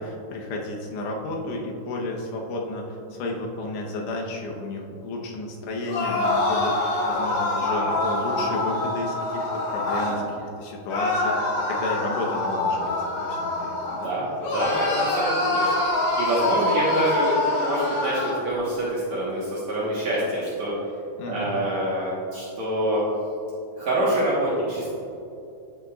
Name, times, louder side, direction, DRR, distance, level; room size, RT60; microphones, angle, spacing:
voice 1, 0.0-14.1 21.2-21.5, left 2 dB, 90° left, 0 dB, 3.3 m, -32 dB
sound 1, 5.8-10.2 10.9-14.1 14.4-18.4, left 2 dB, 55° left, 2.9 m, -25 dB
voice 2, 13.9-20.7 21.3-23.0 23.8-24.9, right 1 dB, 60° right, -8 dB, 1.9 m, -26 dB
10.5 x 8.1 x 2.4 m, 2.6 s
omnidirectional pair, 4.8 m